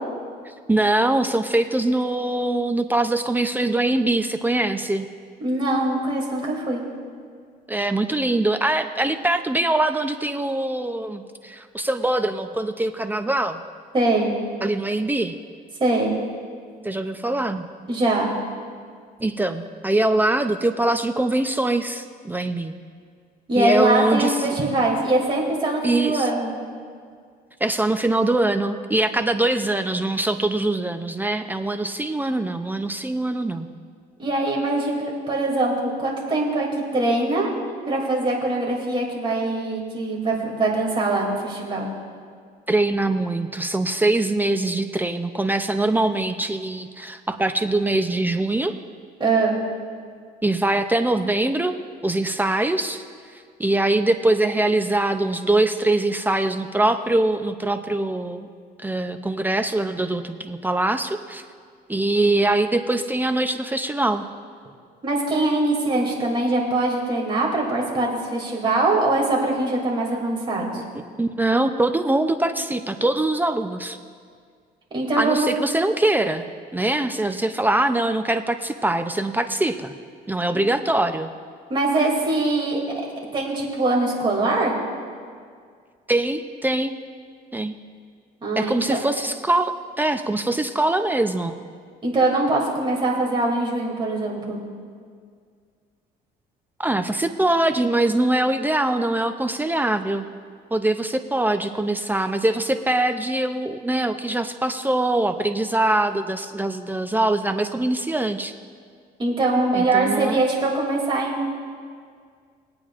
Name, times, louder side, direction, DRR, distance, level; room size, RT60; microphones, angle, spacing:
voice 1, 0.4-5.1 7.7-13.6 14.6-15.4 16.8-17.7 19.2-22.7 23.6-24.5 25.8-26.3 27.6-33.7 42.7-48.7 50.4-51.7 52.0-53.0 53.6-58.5 58.8-61.4 61.9-64.3 70.7-70.8 71.2-74.0 75.2-76.4 76.7-79.9 80.3-81.3 86.1-86.9 87.5-87.8 88.6-91.6 96.8-100.3 100.7-108.5 109.7-110.4, right 2 dB, 10° right, 8 dB, 0.5 m, -23 dB
voice 2, 5.4-6.8 13.9-14.3 15.8-16.1 17.9-18.3 23.5-26.5 34.2-36.7 36.9-37.5 37.9-41.9 49.2-49.6 65.0-70.8 74.9-75.5 81.7-82.8 83.3-84.7 88.4-89.0 92.0-94.6 109.2-111.5, right 2 dB, 30° right, -2 dB, 2.7 m, -22 dB
22.5 x 8.7 x 2.5 m, 2.1 s
cardioid pair, 110°, 17 cm